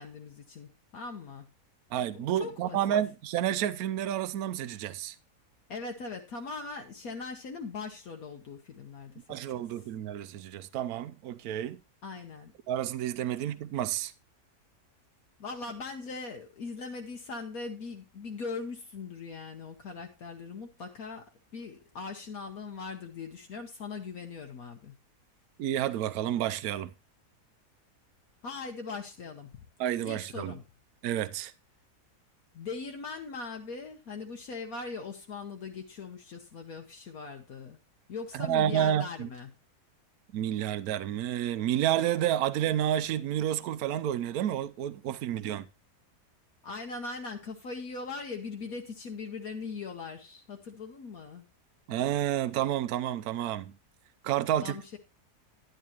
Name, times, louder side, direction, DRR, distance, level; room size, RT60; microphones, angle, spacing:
voice 1, 0.0-1.4 2.1-2.8 5.7-9.6 12.0-12.5 15.4-24.9 28.4-29.6 30.0-30.6 32.5-37.8 38.1-39.5 46.6-51.4 54.5-55.0, left 4 dB, 65° left, 1.4 m, -40 dB
voice 2, 1.9-5.2 9.3-11.8 12.7-14.1 25.6-26.9 29.8-30.6 31.0-31.5 38.3-39.3 40.3-45.7 51.9-53.7 54.2-55.0, right 11 dB, 70° right, 1.1 m, -30 dB
10.5 x 10.5 x 3.0 m
omnidirectional pair, 1.7 m